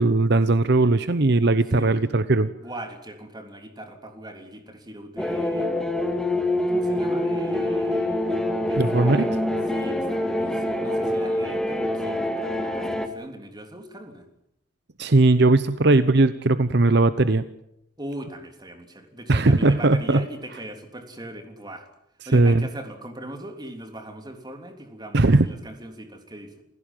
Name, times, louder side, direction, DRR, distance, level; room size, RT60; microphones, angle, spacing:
voice 1, 0.0-2.5 8.8-9.2 15.0-17.4 19.3-20.2 22.3-22.7 25.1-25.5, right 2 dB, 55° right, 14 dB, 0.9 m, -18 dB
voice 2, 2.6-5.9 6.7-9.3 9.7-14.3 18.0-21.9 22.3-26.6, right 1 dB, 20° right, 6 dB, 3.4 m, -39 dB
sound 1, 5.2-13.1, left 1 dB, 5° left, 2.2 m, -25 dB
28.5 x 16.5 x 9.1 m, 0.80 s
head